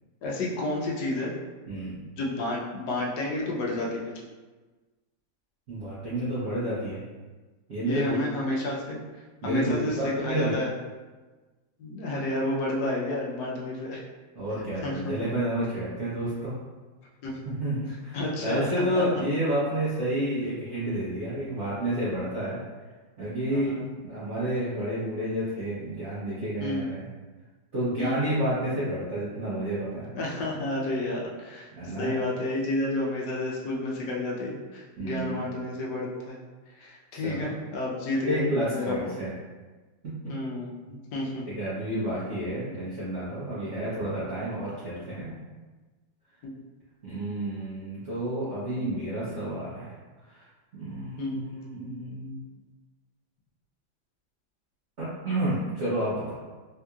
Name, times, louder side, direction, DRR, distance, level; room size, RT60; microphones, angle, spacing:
voice 1, 0.2-1.3 2.2-4.1 7.8-9.0 9.4-10.7 11.8-14.0 14.8-15.1 17.2-17.4 18.1-18.7 18.9-19.2 23.5-23.9 26.6-26.9 28.0-28.2 30.1-36.4 36.8-39.0 40.3-40.7 41.1-41.5 46.5-46.6 51.2-51.4, left 2 dB, 70° left, -3 dB, 1.0 m, -30 dB
voice 2, 1.7-2.0 5.7-7.0 7.7-8.2 9.4-10.5 14.3-16.5 17.5-22.6 23.2-27.1 27.7-30.1 31.8-32.2 35.0-35.5 37.1-37.5 38.2-39.3 40.0-40.3 40.9-41.0 41.5-45.4 47.0-50.0 50.2-50.4 50.8-52.4 55.0-56.4, right 1 dB, 75° right, -11 dB, 0.6 m, -30 dB
3.5 x 2.8 x 2.3 m, 1.3 s
omnidirectional pair, 2.2 m